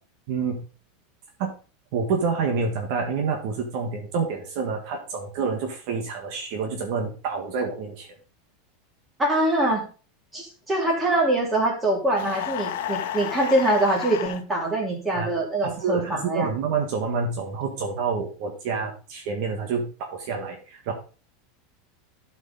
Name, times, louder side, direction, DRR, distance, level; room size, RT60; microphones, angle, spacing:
voice 1, 0.3-0.6 1.4-1.5 1.9-8.1 15.1-15.3 15.6-20.9, right 5 dB, 55° right, 3 dB, 1.6 m, -28 dB
voice 2, 9.2-9.9 10.3-16.5, right 1 dB, 10° right, -2 dB, 3.0 m, -24 dB
sound 1, 12.2-14.4, left 11 dB, 80° left, 1.0 m, -31 dB
12.0 x 5.2 x 3.9 m, 0.35 s
supercardioid pair, 160°, 0 cm